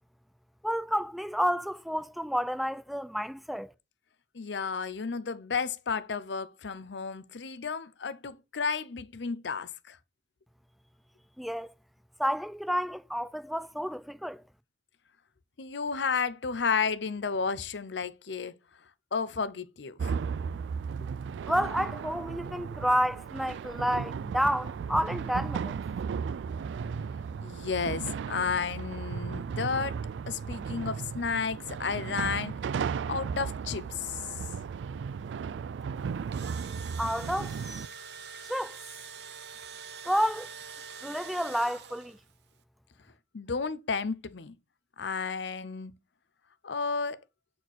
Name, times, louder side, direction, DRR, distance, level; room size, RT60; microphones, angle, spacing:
voice 1, 0.6-3.7 11.4-11.7 12.2-14.4 21.5-25.8 37.0-37.8 38.5-38.8 40.0-40.5 41.0-42.2, equal, ahead, 0.5 m, -30 dB
voice 2, 4.3-10.0 15.6-18.5 19.1-20.3 27.4-29.9 30.3-32.5 33.1-34.2 43.3-44.5 45.0-45.9 46.6-47.2, left 5 dB, 80° left, 0.7 m, -32 dB
sound 1, 20.0-37.9, right 6 dB, 85° right, 0.3 m, -35 dB
Engine / Drill, 36.1-42.3, right 6 dB, 65° right, 0.9 m, -44 dB
8.2 x 4.4 x 4.4 m
head